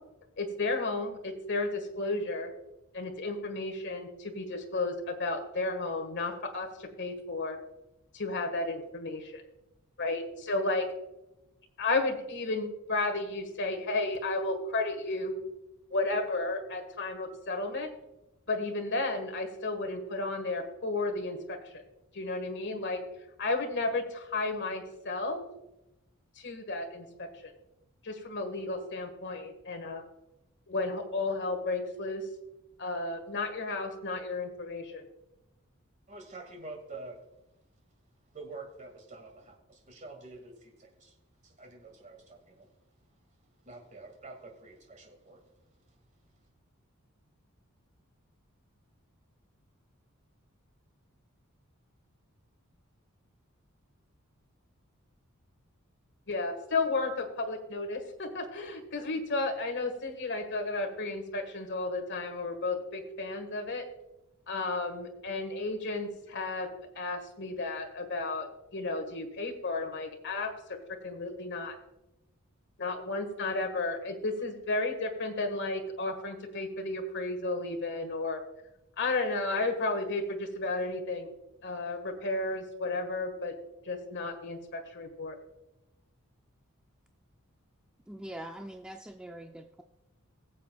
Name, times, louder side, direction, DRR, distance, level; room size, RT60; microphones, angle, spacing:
voice 1, 0.4-2.5 2.9-7.6 8.1-9.4 10.0-10.8 11.8-15.4 15.9-17.9 18.5-21.8 22.1-23.0 23.4-25.4 26.3-27.5 28.0-30.0 30.7-32.2 32.8-35.1 56.3-63.8 64.5-66.7 66.9-70.5 71.0-71.7 72.8-78.4 79.0-81.3 81.6-83.5 83.8-85.3, left 2 dB, 55° left, 4 dB, 1.6 m, -33 dB
voice 2, 36.1-37.2 38.3-41.2 41.4-42.7 43.6-45.4, right 3 dB, 35° right, 2 dB, 2.0 m, -47 dB
voice 3, 88.1-89.8, right 1 dB, 5° right, 3 dB, 0.4 m, -43 dB
21.0 x 7.4 x 2.3 m, 0.92 s
head